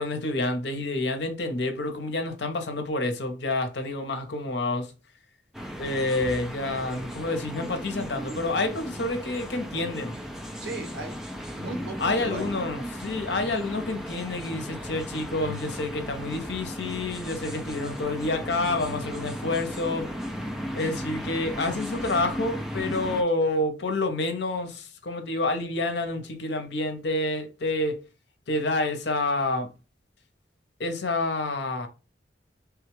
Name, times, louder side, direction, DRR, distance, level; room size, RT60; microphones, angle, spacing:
voice 1, 0.0-4.9 5.8-10.1 12.0-20.1 20.7-28.0 28.5-29.7 30.8-31.9, left 2 dB, 70° left, 0.8 m, -28 dB
sound 1, 5.5-23.2, equal, ahead, 0.4 m, -36 dB
voice 2, 10.6-11.3 11.5-12.5, right 2 dB, 65° right, 1.1 m, -36 dB
3.5 x 2.3 x 3.0 m
head